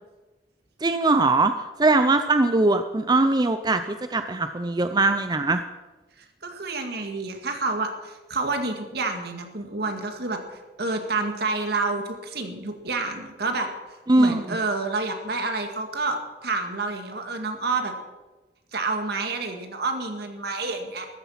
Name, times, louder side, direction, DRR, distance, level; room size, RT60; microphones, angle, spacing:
voice 1, 0.8-1.5 1.8-5.6 14.1-14.6, right 2 dB, 25° right, 9 dB, 0.5 m, -21 dB
voice 2, 6.2-10.4 10.8-13.7 14.2-17.9 18.7-21.1, right 3 dB, 65° right, 5 dB, 2.1 m, -29 dB
14.0 x 13.0 x 5.8 m, 1.2 s
head